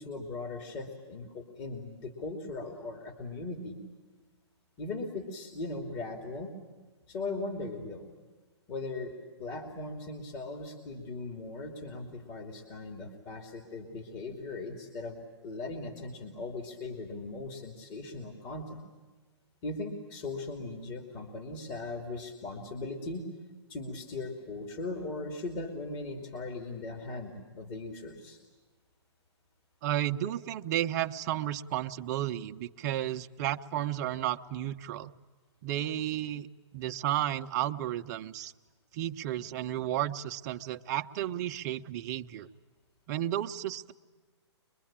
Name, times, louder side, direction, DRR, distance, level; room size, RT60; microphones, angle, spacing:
voice 1, 0.0-3.8 4.8-6.5 7.1-8.1 8.7-18.8 19.6-23.3 23.7-28.4, left 3 dB, 30° left, 2 dB, 2.8 m, -39 dB
voice 2, 29.8-35.1 35.6-36.5 36.7-38.5 38.9-42.5 43.1-43.9, right 12 dB, 40° right, 8 dB, 0.9 m, -32 dB
24.5 x 23.0 x 8.9 m, 1.3 s
hypercardioid pair, 145°, 15 cm